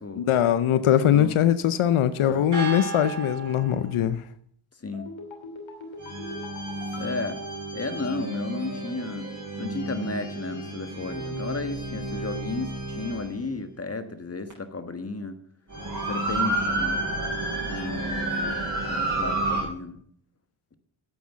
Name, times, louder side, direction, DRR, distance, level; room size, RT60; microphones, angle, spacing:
voice 1, 0.2-4.2, left 10 dB, 85° left, 0.7 m, -21 dB
sound 1, 2.2-4.0 6.0-13.4 14.5-14.6 15.7-19.6, right 2 dB, 40° right, 6.5 m, -31 dB
voice 2, 4.8-5.1 7.0-7.4 7.7-9.3 9.6-15.4 16.1-17.1 17.7-20.0, left 3 dB, 30° left, 1.4 m, -33 dB
sound 2, 4.9-8.4 8.6-8.7, left 2 dB, 65° left, 2.9 m, -43 dB
9.5 x 8.7 x 7.1 m
cardioid pair, 55°, 48 cm